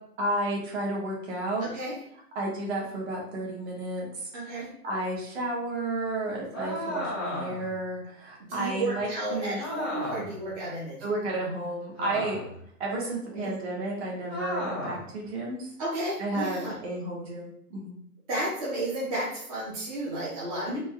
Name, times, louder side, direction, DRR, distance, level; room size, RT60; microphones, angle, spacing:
voice 1, 0.2-1.7 2.3-9.6 11.0-12.4 12.8-15.7 16.2-18.0 20.7-20.8, right 2 dB, 40° right, -3 dB, 1.4 m, -32 dB
voice 2, 1.6-1.9 4.3-4.7 8.5-11.1 13.3-13.5 15.8-16.8 18.3-20.8, right 1 dB, 25° right, -8 dB, 0.7 m, -32 dB
sound 1, 6.5-7.8 9.6-10.4 12.0-12.6 14.3-15.1, left 1 dB, 15° left, 0.4 m, -34 dB
4.0 x 2.3 x 3.4 m, 0.67 s
hypercardioid pair, 160°, 47 cm